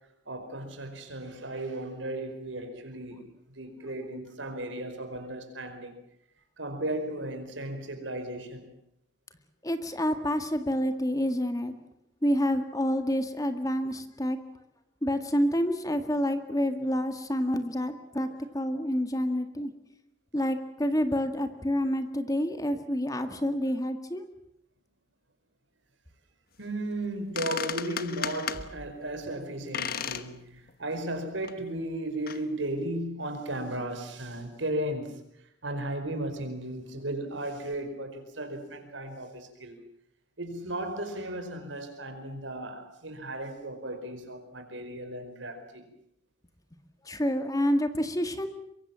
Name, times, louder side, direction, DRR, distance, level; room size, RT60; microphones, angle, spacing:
voice 1, 0.3-3.3 3.5-5.9 6.6-8.7 26.6-35.2 35.6-39.8 40.4-45.8, right 1 dB, 80° right, 4.9 m, -35 dB
voice 2, 9.6-11.8 12.2-14.4 15.0-18.3 18.5-19.7 20.3-24.2 47.1-48.5, equal, 20° left, 1.9 m, -28 dB
sound 1, 27.0-27.1 27.4-28.6 29.7-30.3 30.7-30.8 31.4-31.5 32.3-32.4, left 8 dB, 50° left, 1.2 m, -34 dB
24.5 x 23.5 x 7.5 m
head